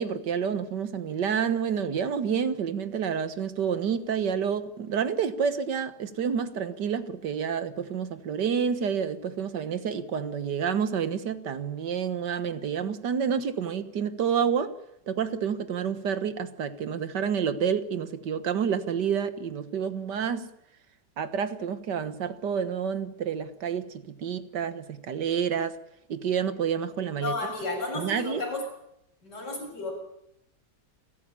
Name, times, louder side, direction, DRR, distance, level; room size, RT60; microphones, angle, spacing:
voice 1, 0.0-14.7 15.1-20.5 21.2-25.8 26.1-27.3 28.0-28.4, right 7 dB, 75° right, 1.9 m, -29 dB
voice 2, 27.1-28.6 29.2-29.9, left 3 dB, 70° left, 7.5 m, -32 dB
28.5 x 14.0 x 8.7 m
omnidirectional pair, 1.9 m